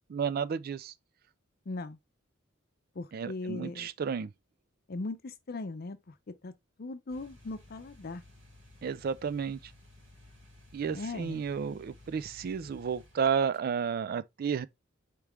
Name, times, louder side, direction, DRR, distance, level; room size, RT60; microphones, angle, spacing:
voice 1, 0.1-0.9 3.1-4.3 8.8-9.7 10.7-14.7, right 6 dB, 50° right, 0.3 m, -32 dB
voice 2, 1.7-2.0 3.0-3.9 4.9-6.1 6.4-6.5 6.8-8.2 10.9-11.4, left 2 dB, 50° left, 0.6 m, -39 dB
sound 1, 7.1-13.6, left 2 dB, 75° right, 3.3 m, -56 dB
4.6 x 3.6 x 3.2 m
head